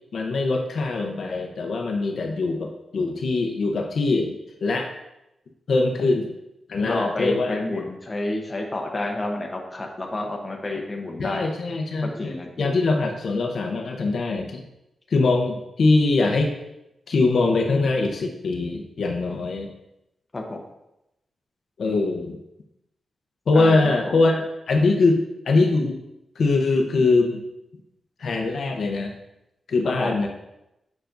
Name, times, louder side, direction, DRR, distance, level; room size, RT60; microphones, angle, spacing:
voice 1, 0.1-4.9 5.7-6.3 6.7-7.8 11.2-14.6 15.1-16.5 17.1-19.7 21.8-22.4 23.5-26.0 26.4-27.4 28.2-29.2 29.7-30.3, left 3 dB, 60° left, 2 dB, 0.7 m, -22 dB
voice 2, 6.9-11.4 12.0-12.7 20.3-20.6 21.9-22.0 23.5-23.8 24.0-24.2 29.8-30.2, left 2 dB, 20° left, 1 dB, 0.9 m, -29 dB
6.8 x 5.8 x 2.6 m, 0.88 s
wide cardioid pair, 140°, 0 cm